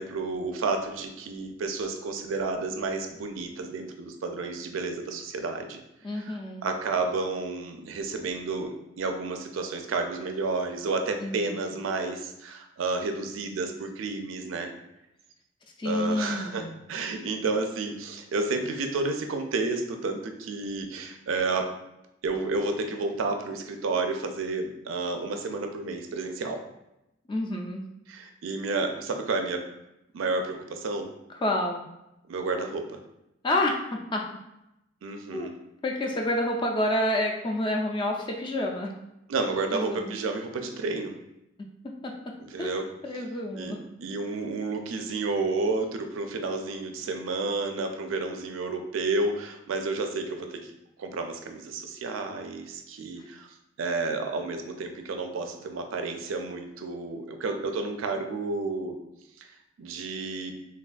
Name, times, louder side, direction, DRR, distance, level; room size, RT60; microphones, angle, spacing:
voice 1, 0.0-5.8 6.1-14.7 15.8-21.7 22.2-26.6 28.1-29.6 30.1-31.1 32.3-33.0 35.0-35.5 39.3-41.2 42.5-42.9 43.5-50.7 51.0-53.5 53.8-59.0 59.4-59.5 59.8-60.5, right 3 dB, 80° right, 5 dB, 0.4 m, -31 dB
voice 2, 6.0-6.7 11.2-11.6 15.8-16.7 27.3-27.8 31.4-31.8 33.4-34.2 35.3-35.5 35.8-38.9 39.7-40.2 41.8-42.7 43.0-43.8, left 1 dB, 25° left, 1 dB, 0.3 m, -29 dB
3.4 x 2.3 x 2.4 m, 0.87 s
head